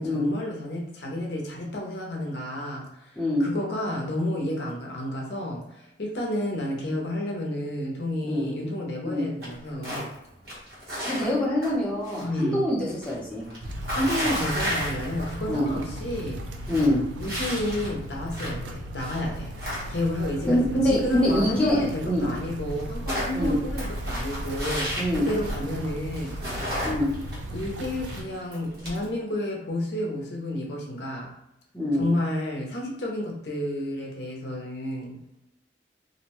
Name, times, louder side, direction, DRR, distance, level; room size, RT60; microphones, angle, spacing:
voice 1, 0.0-10.1 12.2-12.6 13.9-16.4 17.2-19.6 19.9-26.6 27.5-31.3 32.0-35.2, left 1 dB, 70° left, -1 dB, 0.6 m, -31 dB
voice 2, 3.2-3.5 8.2-8.5 9.0-9.3 11.1-13.5 15.5-15.7 16.7-17.0 20.5-22.3 23.3-23.6 25.0-25.3 26.8-27.1 31.7-32.1, left 1 dB, 5° left, -6 dB, 0.6 m, -25 dB
sound 1, 9.4-10.1 10.4-12.3 12.6-15.5 15.9-16.0 16.4-18.6 19.0-20.2 21.8-21.9 22.1-22.2 22.5-25.8 26.1-29.1, equal, 55° right, 1.1 m, -33 dB
sound 2, 13.6-28.2, equal, 85° right, 0.4 m, -36 dB
2.5 x 2.1 x 2.9 m, 0.85 s
head